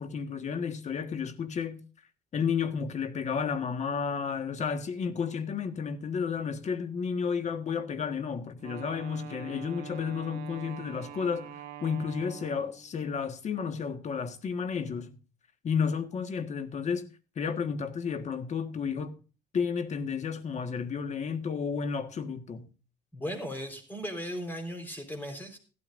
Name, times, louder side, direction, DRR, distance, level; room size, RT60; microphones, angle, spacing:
voice 1, 0.0-1.8 2.3-15.2 15.6-17.0 17.3-19.1 19.5-22.7, left 6 dB, 45° left, 1.5 m, -32 dB
Wind instrument woodwind instrument, 8.6-12.9, right 8 dB, 70° right, 2.3 m, -44 dB
voice 2, 23.1-25.6, equal, 10° left, 4.1 m, -37 dB
16.0 x 12.5 x 2.6 m
cardioid pair, 110°, 17 cm